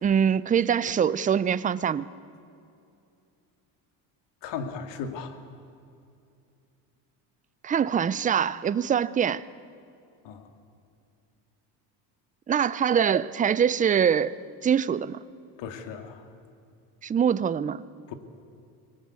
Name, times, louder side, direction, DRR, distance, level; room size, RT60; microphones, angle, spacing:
voice 1, 0.0-2.1 7.6-9.4 12.5-14.3 14.6-15.2 17.0-17.8, right 8 dB, 20° right, 0.5 m, -23 dB
voice 2, 4.4-5.4 10.2-10.5 15.6-16.3 18.1-18.2, left 6 dB, 65° left, 2.4 m, -36 dB
24.0 x 19.0 x 8.3 m
cardioid pair, 120°, 45 cm